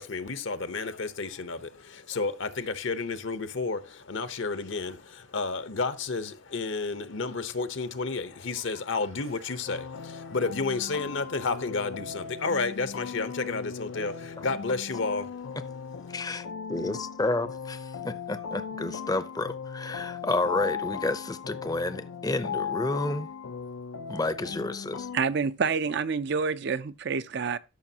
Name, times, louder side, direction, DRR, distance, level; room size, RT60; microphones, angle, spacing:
voice 1, 0.0-16.2, left 4 dB, 65° left, 0.9 m, -31 dB
sound 1, 3.3-6.6 7.5-9.7 10.6-11.2, right 3 dB, 85° right, 4.0 m, -63 dB
sound 2, 9.7-25.2, left 6 dB, 85° left, 0.5 m, -38 dB
voice 2, 16.7-23.3 24.1-25.1, left 2 dB, 20° left, 0.6 m, -30 dB
voice 3, 25.1-27.6, right 5 dB, 55° right, 0.5 m, -28 dB
13.5 x 6.2 x 2.8 m
head